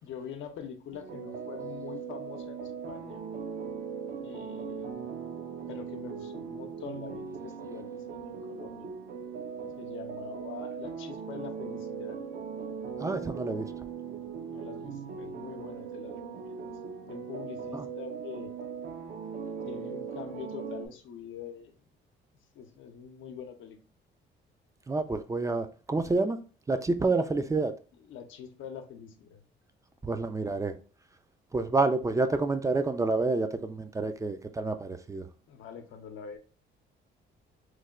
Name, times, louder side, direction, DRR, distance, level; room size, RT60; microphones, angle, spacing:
voice 1, 0.0-3.2 4.2-4.9 5.7-8.9 9.8-12.2 14.5-18.5 19.6-21.8 22.5-23.8 27.2-27.3 28.0-29.4 35.5-36.4, left 7 dB, 75° left, 0.6 m, -44 dB
sound 1, 0.9-20.9, right 6 dB, 55° right, 0.6 m, -39 dB
voice 2, 13.0-13.7 17.7-17.8 24.9-26.4 26.7-27.7 30.0-30.8 31.5-35.3, right 3 dB, 15° right, 0.3 m, -28 dB
3.2 x 2.2 x 3.6 m
cardioid pair, 90°, 20 cm